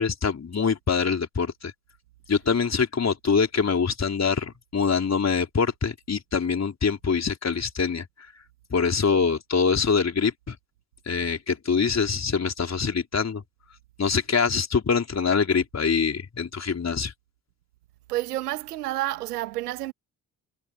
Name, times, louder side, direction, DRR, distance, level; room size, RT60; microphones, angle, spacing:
voice 1, 0.0-1.7 2.3-8.1 8.7-10.6 11.1-13.4 14.0-17.1, left 5 dB, 35° left, 4.7 m, -24 dB
voice 2, 18.1-19.9, right 16 dB, 85° right, 1.7 m, -29 dB
hypercardioid pair, 50°, 45 cm